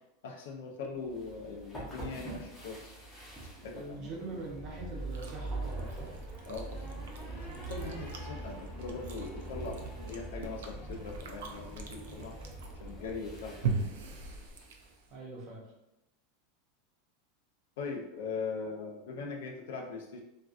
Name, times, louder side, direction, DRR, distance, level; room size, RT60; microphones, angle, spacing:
voice 1, 0.2-2.9 3.6-4.1 6.5-6.9 7.7-12.3 12.8-13.8 17.8-20.2, left 4 dB, 70° left, 2 dB, 0.4 m, -40 dB
sound 1, 1.0-14.9, right 2 dB, 5° left, 0.6 m, -43 dB
voice 2, 3.7-6.1 15.1-15.6, right 2 dB, 35° right, -2 dB, 0.6 m, -42 dB
Chewing mastication, 5.0-15.2, right 4 dB, 80° right, 0.4 m, -41 dB
2.5 x 2.3 x 2.3 m, 0.89 s
supercardioid pair, 175°, 0 cm